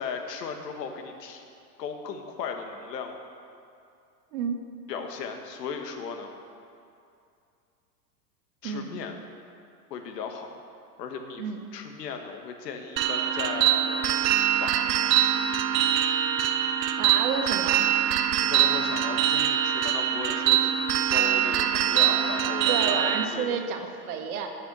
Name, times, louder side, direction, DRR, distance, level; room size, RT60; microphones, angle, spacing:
voice 1, 0.0-1.4 1.8-3.2 4.9-6.3 8.6-9.2 9.9-10.6 11.0-11.4 11.7-15.4 18.4-23.9, left 5 dB, 80° left, 5 dB, 1.5 m, -37 dB
sound 1, 13.0-23.3, right 10 dB, 80° right, 0.7 m, -24 dB
voice 2, 17.0-17.9 22.7-24.5, right 6 dB, 60° right, 4 dB, 1.5 m, -30 dB
8.7 x 7.4 x 8.1 m, 2.5 s
supercardioid pair, 145°, 49 cm